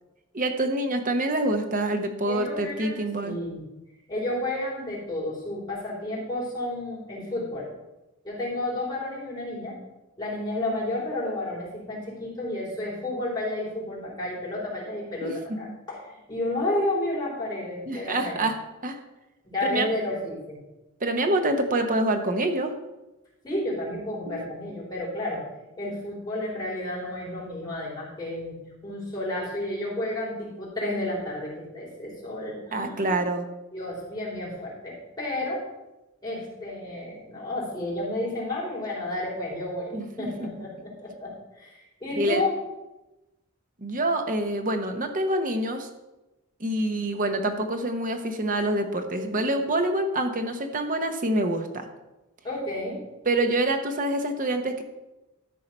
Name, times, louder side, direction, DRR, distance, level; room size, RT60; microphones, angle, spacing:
voice 1, 0.3-3.3 15.2-15.6 17.9-18.6 18.8-19.0 19.6-19.9 21.0-22.7 24.3-24.4 32.7-33.5 39.9-40.5 42.2-42.4 43.8-45.9 46.6-51.9 53.2-54.8, right 1 dB, 40° right, 6 dB, 1.0 m, -26 dB
voice 2, 2.3-3.6 4.1-7.7 8.2-9.7 10.2-18.4 19.4-20.6 23.4-25.4 25.8-28.6 28.8-33.2 33.7-35.6 36.2-42.6 52.4-53.0, left 1 dB, 20° left, -6 dB, 4.0 m, -31 dB
13.0 x 4.7 x 5.4 m, 0.99 s
head